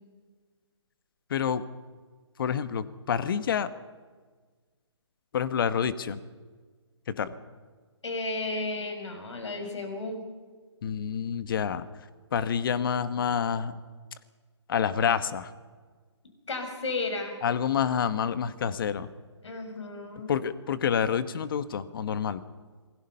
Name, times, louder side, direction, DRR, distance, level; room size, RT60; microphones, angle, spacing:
voice 1, 1.3-1.6 2.4-3.7 5.3-6.2 7.1-7.3 10.8-11.9 12.3-13.7 14.7-15.5 17.4-19.1 20.3-22.4, left 7 dB, 50° left, 14 dB, 1.3 m, -28 dB
voice 2, 8.0-10.2 16.5-17.4 19.4-20.3, left 2 dB, 75° left, 4 dB, 6.5 m, -33 dB
27.0 x 20.5 x 5.5 m, 1.4 s
hypercardioid pair, 150°, 15 cm